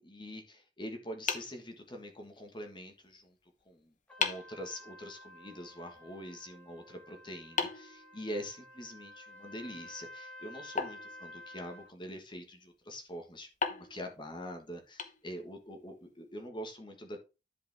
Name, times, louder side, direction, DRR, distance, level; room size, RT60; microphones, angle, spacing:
voice 1, 0.0-3.4 3.6-17.2, equal, 25° left, 3 dB, 1.4 m, -44 dB
sound 1, 1.3-2.4 3.6-3.7 4.2-4.6 7.6-8.8 10.8-11.9 13.6-15.7, left 5 dB, 45° left, 1.0 m, -38 dB
Trumpet, 4.1-11.9, left 1 dB, 5° left, 1.5 m, -52 dB
10.5 x 5.1 x 3.4 m, 0.29 s
head